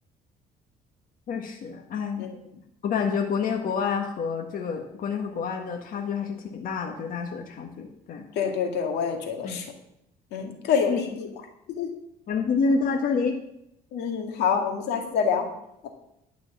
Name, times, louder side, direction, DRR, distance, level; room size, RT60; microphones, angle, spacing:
voice 1, 1.3-2.3 2.8-8.3 9.4-9.6 10.9-11.0 12.3-13.4, left 5 dB, 55° left, 2 dB, 1.7 m, -28 dB
voice 2, 8.4-9.6 10.3-11.3 11.7-11.9 13.9-15.5, left 6 dB, 85° left, 3 dB, 2.0 m, -26 dB
11.0 x 6.3 x 7.5 m, 0.80 s
cardioid pair, 110°, 17 cm